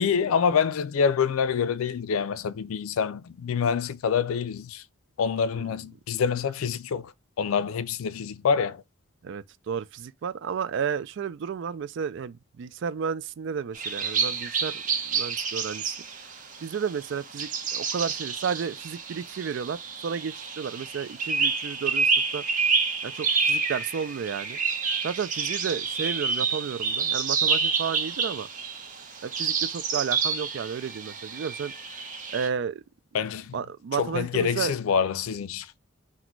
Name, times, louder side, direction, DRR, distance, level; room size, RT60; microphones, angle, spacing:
voice 1, 0.0-4.8 5.2-7.1 7.4-8.8 33.1-33.6 34.0-35.7, left 6 dB, 80° left, 0.4 m, -26 dB
voice 2, 5.5-5.8 9.2-16.0 16.6-22.4 23.0-24.6 25.0-28.5 29.2-31.7 32.3-32.8 33.5-34.7, right 6 dB, 60° right, 0.3 m, -32 dB
sound 1, 13.8-32.5, right 5 dB, 40° right, 0.8 m, -28 dB
4.1 x 2.1 x 4.4 m
head